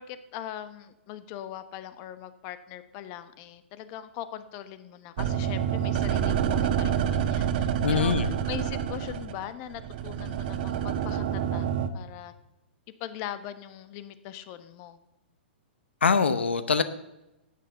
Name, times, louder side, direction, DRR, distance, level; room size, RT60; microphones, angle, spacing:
voice 1, 0.0-8.1 8.5-11.7 11.9-12.3 13.0-15.0, left 11 dB, 40° left, 12 dB, 1.1 m, -40 dB
sound 1, 5.2-11.9, right 9 dB, 55° right, 1.2 m, -28 dB
voice 2, 7.8-8.4 16.0-16.8, left 5 dB, 90° left, 12 dB, 0.8 m, -23 dB
12.0 x 9.5 x 6.5 m, 0.94 s
hypercardioid pair, 125°, 6 cm